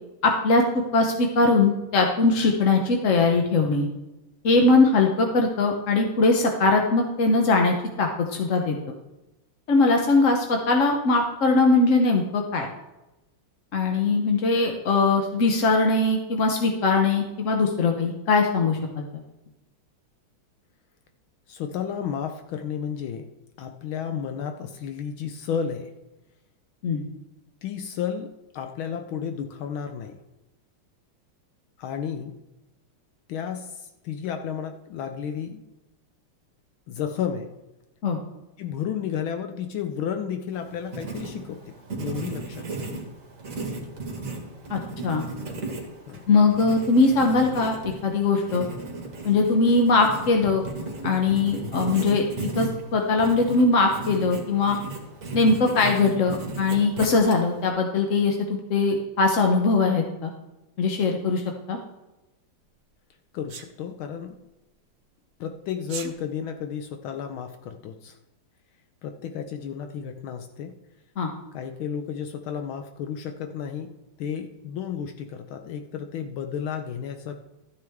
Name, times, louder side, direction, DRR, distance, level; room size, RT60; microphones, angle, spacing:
voice 1, 0.2-3.9 4.4-8.7 9.7-12.7 13.7-19.0 26.8-27.0 38.0-38.2 44.7-45.2 46.3-47.7 48.0-48.6 49.2-50.6 51.0-54.8 55.3-60.3 60.8-61.8 71.2-71.3, left 3 dB, 55° left, 2 dB, 0.9 m, -21 dB
voice 2, 21.5-23.3 23.6-25.9 27.6-30.2 31.8-32.3 33.3-35.6 36.9-37.5 38.6-42.9 43.6-43.8 46.1-46.3 51.6-51.7 63.3-64.4 65.4-68.2 69.0-70.7 71.5-77.3, left 8 dB, 75° left, 7 dB, 1.4 m, -32 dB
Writing, 40.5-57.7, right 3 dB, 40° right, 1.8 m, -35 dB
Sneeze, 63.5-63.7 65.8-66.1, right 7 dB, 55° right, 1.0 m, -36 dB
13.0 x 9.3 x 3.5 m, 1.0 s
omnidirectional pair, 2.4 m